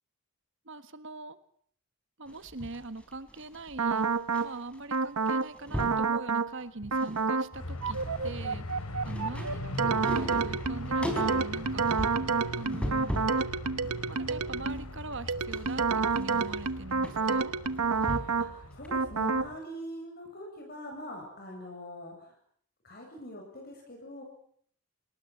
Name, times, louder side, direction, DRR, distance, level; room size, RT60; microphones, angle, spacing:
voice 1, 0.6-1.4 2.2-4.1 4.4-8.0 8.2-11.9 12.5-13.2 14.1-17.5, right 2 dB, 55° right, 12 dB, 1.5 m, -42 dB
Room Rummaging, 2.3-4.4 4.7-5.0 5.2-6.1 6.6-7.3 7.6-13.4 13.8-18.5 18.8-18.9, equal, 5° left, 4.5 m, -39 dB
sound 1, 3.8-4.5 4.9-5.5 5.8-6.5 6.9-7.5 7.8-14.9 15.3-18.5 18.9-19.5, right 4 dB, 90° right, 1.2 m, -29 dB
sound 2, 7.5-19.6, left 1 dB, 80° left, 3.7 m, -40 dB
voice 2, 18.2-22.4 22.8-24.2, equal, 45° left, 2 dB, 7.8 m, -43 dB
27.5 x 20.5 x 8.0 m, 0.62 s
head